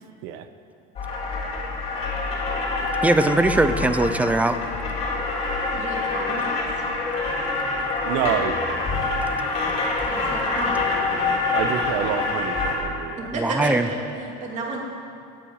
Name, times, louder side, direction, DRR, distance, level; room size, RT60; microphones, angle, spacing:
sound 1, 1.0-12.8, left 3 dB, 30° left, 3.4 m, -26 dB
voice 1, 3.0-4.6 13.4-13.9, right 2 dB, 5° right, 10 dB, 0.5 m, -20 dB
voice 2, 5.7-6.6 10.0-11.4 13.2-14.8, right 2 dB, 35° right, -1 dB, 2.6 m, -32 dB
voice 3, 8.0-8.6 11.5-13.3, right 10 dB, 70° right, 10 dB, 0.9 m, -27 dB
14.5 x 9.2 x 9.6 m, 2.5 s
cardioid pair, 170°, 21 cm